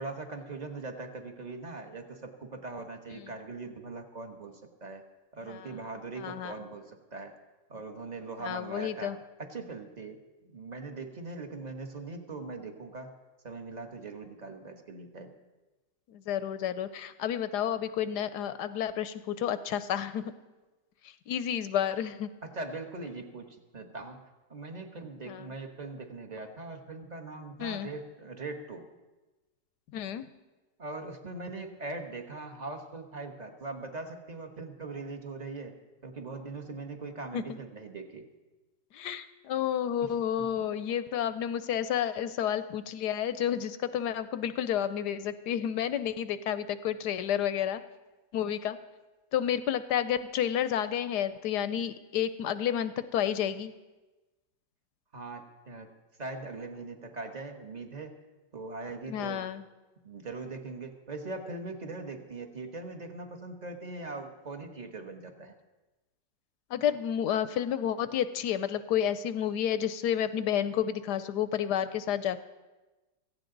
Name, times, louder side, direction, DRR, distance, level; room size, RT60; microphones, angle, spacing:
voice 1, 0.0-5.0 5.3-7.3 7.7-10.2 10.5-13.1 13.4-15.3 22.4-24.2 24.5-28.8 30.8-35.7 36.0-38.3 40.4-40.7 55.1-55.9 56.2-58.1 58.5-59.5 60.0-65.5, right 3 dB, 25° right, 5 dB, 1.2 m, -41 dB
voice 2, 6.2-6.5 8.4-9.2 16.1-20.3 21.3-22.3 25.3-25.5 27.6-27.9 29.9-30.2 37.3-37.4 38.9-47.8 48.3-48.8 49.3-53.7 59.1-59.6 66.7-72.4, left 9 dB, 75° left, 13 dB, 1.1 m, -30 dB
16.5 x 15.5 x 3.9 m, 1.2 s
omnidirectional pair, 1.9 m